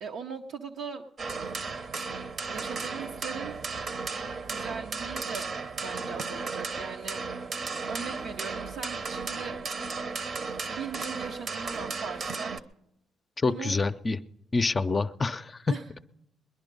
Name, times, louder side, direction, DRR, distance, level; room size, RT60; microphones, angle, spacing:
voice 1, 0.0-1.0 2.5-3.6 4.4-5.5 5.8-7.2 7.9-9.6 10.7-12.6 13.4-13.8 15.7-15.8, right 6 dB, 85° right, 0 dB, 0.7 m, -39 dB
sound 1, 1.2-12.6, right 4 dB, 50° right, 0.8 m, -35 dB
voice 2, 13.4-14.2 14.5-15.6, left 3 dB, 30° left, 10 dB, 0.5 m, -27 dB
20.5 x 10.5 x 5.3 m, 0.83 s
cardioid pair, 90°, 0 cm